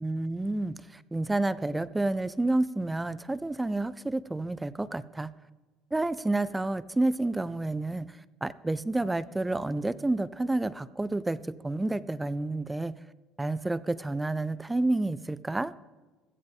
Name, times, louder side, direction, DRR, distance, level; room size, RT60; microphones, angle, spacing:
voice 1, 0.0-5.3 5.9-8.1 8.4-13.0 13.4-15.7, right 2 dB, 10° right, 17 dB, 0.4 m, -29 dB
16.5 x 13.5 x 3.5 m, 1.2 s
cardioid pair, 130°, 0 cm